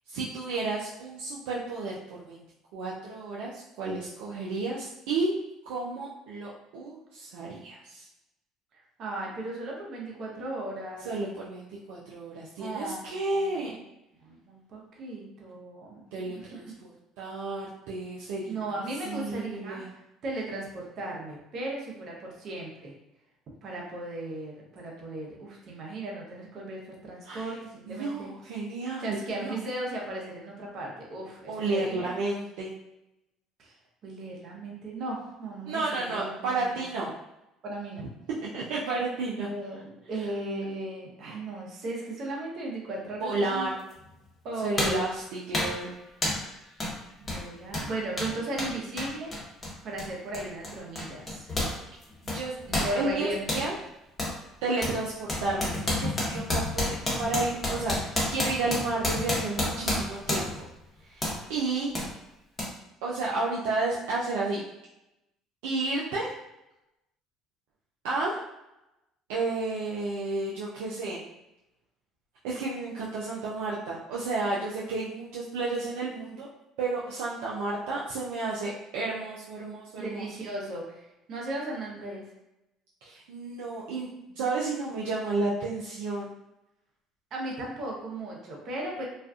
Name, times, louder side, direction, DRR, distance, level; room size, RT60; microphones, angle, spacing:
voice 1, 0.1-2.4 2.7-5.3 5.7-8.0 11.0-13.7 16.1-16.9 17.2-18.6 19.0-19.9 27.2-27.5 27.9-29.6 31.5-32.7 35.7-37.1 38.4-39.5 43.2-43.7 44.6-45.9 52.2-53.7 54.6-60.5 61.0-61.9 63.0-64.6 65.6-66.3 68.0-68.4 69.3-71.2 72.4-76.5 76.8-80.2 83.0-84.1 84.4-86.3, right 3 dB, 75° right, -5 dB, 0.4 m, -32 dB
voice 2, 8.7-11.1 12.6-13.0 13.3-13.8 14.2-16.7 18.5-22.9 23.6-28.3 29.0-32.1 33.6-33.7 34.0-36.8 37.6-38.1 39.4-43.7 44.4-45.0 47.2-49.3 49.8-51.5 52.8-53.7 79.9-82.2 87.3-89.0, right 2 dB, 55° right, -2 dB, 0.8 m, -36 dB
sound 1, 43.9-44.0 44.8-45.1 45.5-45.8 46.2-46.5 46.8-47.0 47.2-51.8 52.0-53.7 54.2-54.4 54.8-60.7 61.2-61.4 61.9-62.1 62.6-62.7, left 1 dB, 30° left, 1.0 m, -30 dB
2.4 x 2.3 x 2.4 m, 0.92 s
hypercardioid pair, 65°, 0 cm